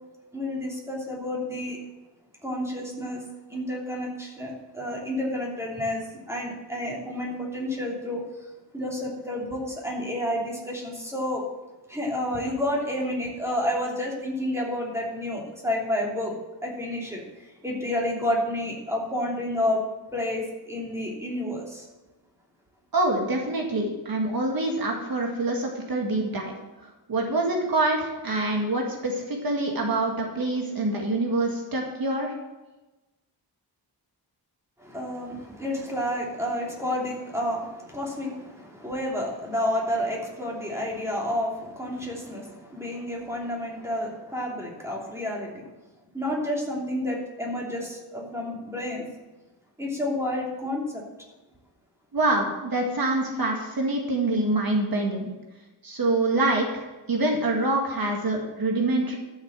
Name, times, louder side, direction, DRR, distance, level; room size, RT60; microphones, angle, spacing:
voice 1, 0.3-1.8 2.4-3.2 3.5-8.2 8.7-11.4 11.9-16.3 16.6-17.2 17.6-19.8 20.1-21.8 34.8-45.6 46.1-49.0 49.8-51.0, left 1 dB, 5° right, -3 dB, 2.9 m, -30 dB
voice 2, 22.9-26.5 27.1-32.3 52.1-55.3 55.8-59.2, right 2 dB, 55° right, 1 dB, 2.0 m, -25 dB
12.0 x 6.6 x 7.5 m, 1.1 s
wide cardioid pair, 170°, 42 cm